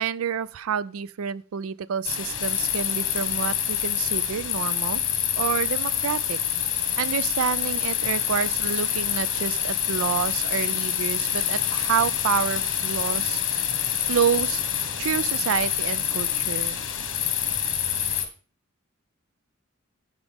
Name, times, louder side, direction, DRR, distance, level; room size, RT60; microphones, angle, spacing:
voice 1, 0.0-5.0 5.4-6.4 7.0-13.4 14.1-14.6 15.0-16.8, right 7 dB, 85° right, 0.4 m, -28 dB
sound 1, 2.0-18.2, left 9 dB, 60° left, 1.3 m, -26 dB
14.5 x 5.1 x 3.5 m
head